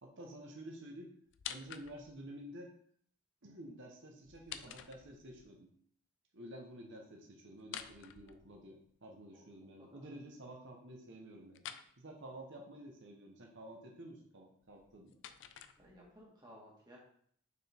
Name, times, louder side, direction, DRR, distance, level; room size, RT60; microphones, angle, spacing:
voice 1, 0.0-1.1 1.5-2.7 3.4-5.7 6.3-11.6 12.0-15.2, right 1 dB, 55° right, 0 dB, 1.0 m, -51 dB
sound 1, 1.3-2.3 4.2-5.5 7.6-8.9 11.5-11.9 14.6-16.2, left 9 dB, 55° left, 0.4 m, -49 dB
voice 2, 15.8-17.0, equal, 20° right, -3 dB, 1.7 m, -57 dB
6.5 x 4.4 x 3.5 m, 0.62 s
head